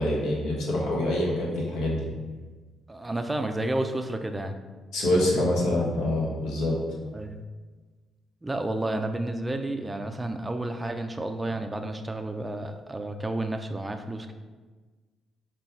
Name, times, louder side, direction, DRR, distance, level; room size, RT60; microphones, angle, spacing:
voice 1, 0.0-2.1 4.9-6.7, left 1 dB, 85° left, -3 dB, 1.1 m, -25 dB
voice 2, 2.9-4.6 7.1-7.4 8.4-14.3, right 1 dB, 15° right, 6 dB, 0.4 m, -31 dB
5.4 x 2.3 x 4.4 m, 1.4 s
cardioid pair, 90°, 0 cm